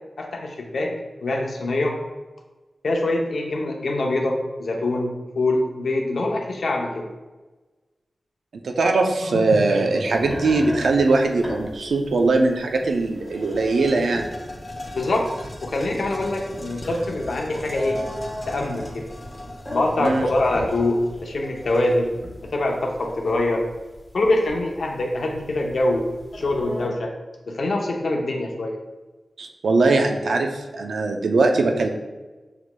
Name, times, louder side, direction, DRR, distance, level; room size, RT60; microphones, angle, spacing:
voice 1, 0.2-0.9 1.2-2.0 2.8-5.1 5.4-7.1 9.3-9.4 14.9-15.3 15.6-18.0 18.5-19.1 19.7-22.1 22.5-23.6 24.1-26.1 26.3-27.1 27.5-28.8, left 2 dB, 75° left, 1 dB, 0.6 m, -24 dB
voice 2, 8.6-14.3 20.0-20.3 29.4-31.9, right 3 dB, 90° right, 3 dB, 0.4 m, -21 dB
sound 1, 10.1-26.9, equal, 10° left, 1.2 m, -38 dB
sound 2, 12.3-12.4 12.8-23.5, left 1 dB, 40° left, 0.7 m, -39 dB
6.6 x 3.0 x 2.2 m, 1.2 s
wide cardioid pair, 70°, 0 cm